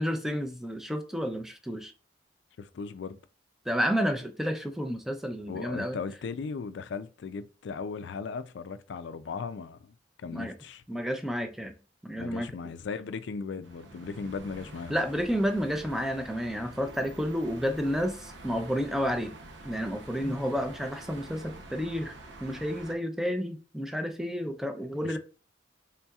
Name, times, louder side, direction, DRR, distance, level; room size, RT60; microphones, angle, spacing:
voice 1, 0.0-1.9 3.7-6.0 10.3-10.5 10.9-11.7 12.0-12.5 14.9-19.3 19.6-22.2 22.4-25.2, equal, ahead, 0.4 m, -30 dB
voice 2, 2.6-3.2 5.5-10.8 12.2-14.9 25.0-25.2, left 5 dB, 80° left, 0.4 m, -37 dB
sound 1, 13.6-23.0, right 2 dB, 85° right, 0.7 m, -47 dB
4.1 x 3.6 x 2.3 m
head